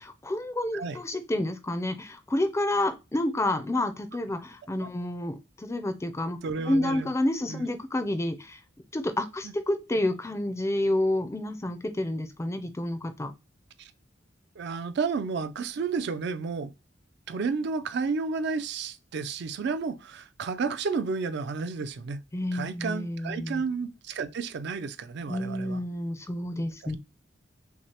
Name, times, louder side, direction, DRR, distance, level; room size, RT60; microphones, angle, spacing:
voice 1, 0.0-6.4 6.7-8.6 8.9-13.3 22.3-23.6 25.3-27.0, left 1 dB, 15° left, 0.4 m, -29 dB
voice 2, 6.4-7.1 7.5-7.6 9.4-9.5 13.8-13.9 14.6-16.7 17.3-22.2 22.5-25.8 26.8-27.0, right 4 dB, 60° right, 0.4 m, -31 dB
5.8 x 2.0 x 2.8 m
head